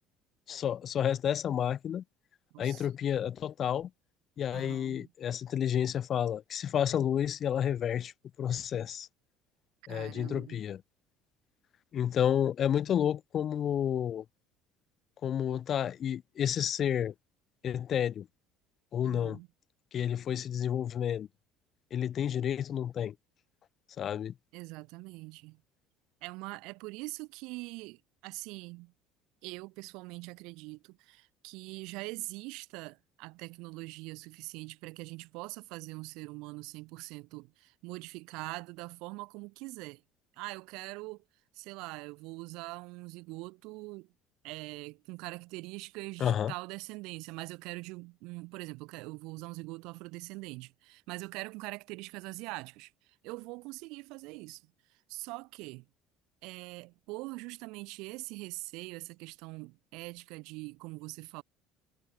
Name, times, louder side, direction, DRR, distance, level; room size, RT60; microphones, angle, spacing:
voice 1, 0.5-2.0 2.6-3.9 4.4-8.1 8.4-9.1 9.9-10.8 11.9-14.2 15.2-17.1 17.6-18.3 18.9-19.4 19.9-21.3 21.9-23.1 24.0-24.3 46.2-46.5, left 9 dB, 40° left, 2.5 m, -30 dB
voice 2, 2.5-2.9 4.5-5.1 9.9-10.6 19.0-19.5 24.5-25.6 26.2-28.9 29.4-40.0 40.3-41.2 41.5-44.1 44.4-55.9 56.4-61.4, right 24 dB, 75° right, 6.0 m, -43 dB
cardioid pair, 140°, 0 cm